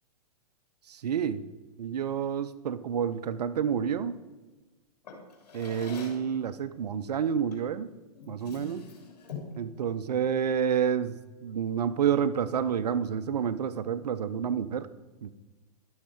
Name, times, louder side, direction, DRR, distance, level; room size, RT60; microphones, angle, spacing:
voice 1, 0.9-1.4 1.8-4.2 5.5-7.9 8.3-8.8 9.6-14.9 15.2-15.3, right 8 dB, 80° right, 14 dB, 0.6 m, -29 dB
Drawer open or close, 5.0-6.3 7.5-7.7 8.1-9.6, left 6 dB, 80° left, 3.3 m, -44 dB
12.0 x 6.5 x 5.1 m, 1.2 s
hypercardioid pair, 125°, 20 cm